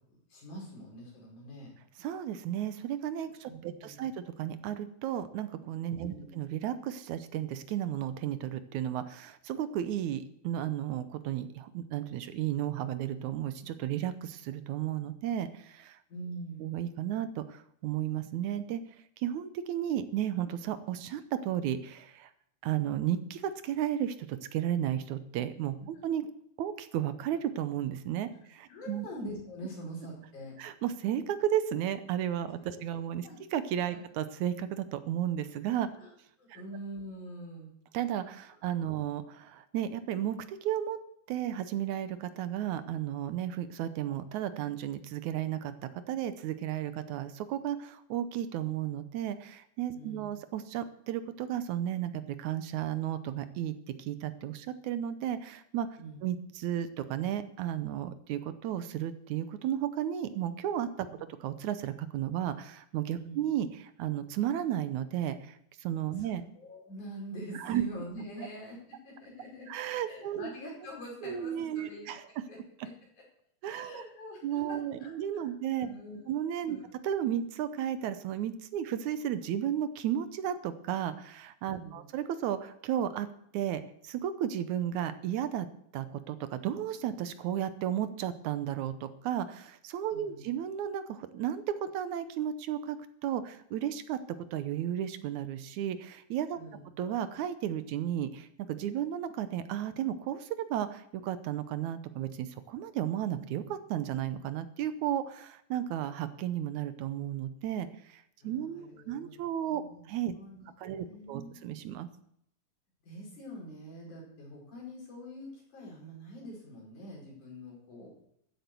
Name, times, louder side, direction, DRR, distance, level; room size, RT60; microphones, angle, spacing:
voice 1, 0.1-1.7 3.5-4.1 6.0-6.3 16.1-16.7 28.7-30.5 33.2-33.4 33.9-34.0 35.9-36.1 36.4-37.7 49.9-50.3 56.0-56.2 61.1-61.2 63.2-63.4 66.2-66.3 66.5-69.7 70.1-72.1 72.5-72.6 72.8-72.9 73.7-75.5 75.8-76.2 76.7-76.9 81.7-82.1 90.1-90.5 96.5-96.8 108.4-110.1 110.3-111.6 113.0-118.1, equal, 75° left, -3 dB, 6.6 m, -45 dB
voice 2, 2.0-16.0 16.6-18.8 19.2-22.3 22.6-26.3 26.6-29.1 30.6-35.9 36.5-36.6 37.9-41.0 41.3-55.9 56.2-61.1 61.4-66.4 67.5-67.8 69.7-70.5 71.2-72.2 73.6-74.0 74.4-75.9 76.3-76.8 77.0-83.3 83.5-85.7 85.9-93.0 93.2-94.2 94.5-96.6 97.0-110.4 110.8-112.1, right 10 dB, 75° right, 12 dB, 2.2 m, -33 dB
14.0 x 8.4 x 6.9 m, 0.71 s
omnidirectional pair, 3.5 m